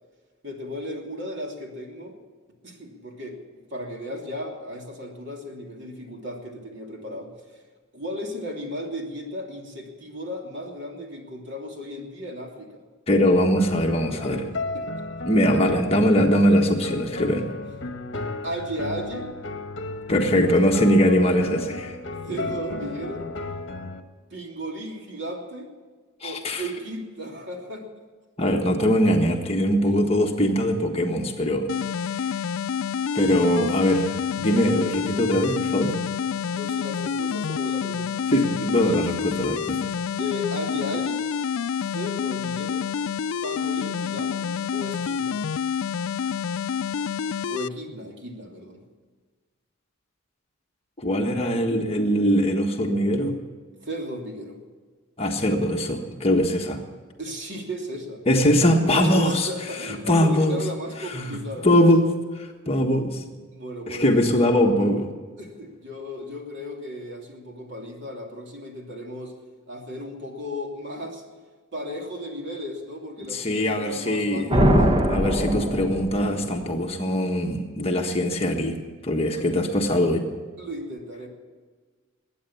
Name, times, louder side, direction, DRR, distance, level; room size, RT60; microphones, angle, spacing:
voice 1, 0.4-2.2 2.6-7.3 7.9-12.8 14.1-14.9 18.4-19.3 20.5-20.6 22.2-23.3 24.3-25.7 26.2-27.9 31.4-31.5 36.5-38.3 40.2-41.2 41.9-42.8 43.4-45.4 47.5-48.8 53.8-54.6 57.2-58.2 58.9-61.9 63.5-64.5 65.4-69.4 69.7-71.2 71.7-74.8 79.3-79.5 80.6-81.3, equal, 55° right, 1 dB, 3.0 m, -35 dB
voice 2, 13.1-14.4 15.2-17.4 20.1-22.0 26.2-26.6 28.4-31.6 32.1-32.3 33.1-34.1 34.4-35.9 38.3-39.9 51.0-53.4 55.2-56.8 58.3-59.5 59.8-60.6 61.1-61.4 61.6-62.1 62.3-63.2 63.9-65.1 73.3-74.5 75.0-78.8 79.0-80.2, equal, 30° left, 2 dB, 1.4 m, -21 dB
sound 1, 13.6-24.0, left 2 dB, 55° left, 1.3 m, -34 dB
sound 2, 31.7-47.7, left 7 dB, 80° left, 0.4 m, -28 dB
sound 3, 74.5-76.5, equal, 25° right, 1.1 m, -21 dB
21.5 x 9.3 x 7.1 m, 1.5 s
head